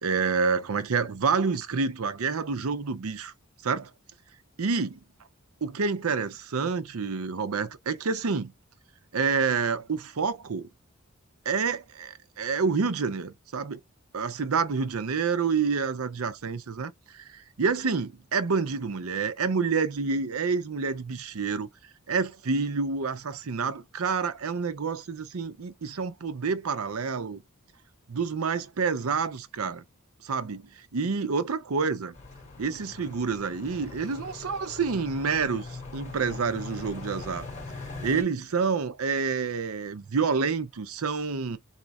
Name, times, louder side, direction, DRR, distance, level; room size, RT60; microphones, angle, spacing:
voice 1, 0.0-3.3 3.6-3.9 4.6-5.0 5.6-8.5 9.1-10.7 11.4-13.8 14.1-21.7 22.1-27.4 28.1-29.8 30.2-32.1 32.6-37.5 38.0-41.6, right 5 dB, 85° right, 0.6 m, -28 dB
sound 1, 32.1-38.2, left 3 dB, 35° left, 2.1 m, -41 dB
4.2 x 2.5 x 4.0 m
head